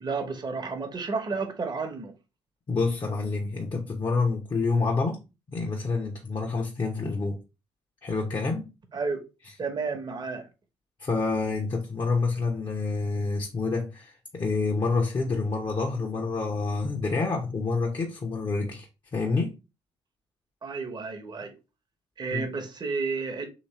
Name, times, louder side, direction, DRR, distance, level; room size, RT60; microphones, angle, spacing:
voice 1, 0.0-2.1 8.9-9.2 9.6-10.5 20.6-21.6 22.2-23.5, right 4 dB, 35° right, 1.0 m, -31 dB
voice 2, 2.7-5.2 5.5-7.4 8.0-8.7 11.0-18.9 19.1-19.5 22.3-22.4, left 4 dB, 35° left, 1.0 m, -28 dB
3.2 x 3.0 x 4.2 m
hypercardioid pair, 45°, 12 cm